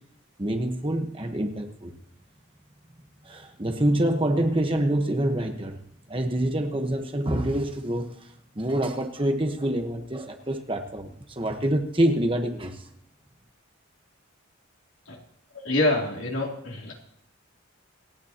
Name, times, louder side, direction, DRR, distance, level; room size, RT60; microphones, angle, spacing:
voice 1, 0.4-1.9 3.2-5.8 6.1-8.3 8.6-11.1 11.4-12.9, right 1 dB, 25° right, 5 dB, 1.1 m, -26 dB
voice 2, 15.5-16.9, left 2 dB, 75° left, -1 dB, 3.0 m, -26 dB
27.0 x 9.4 x 2.9 m, 0.77 s
head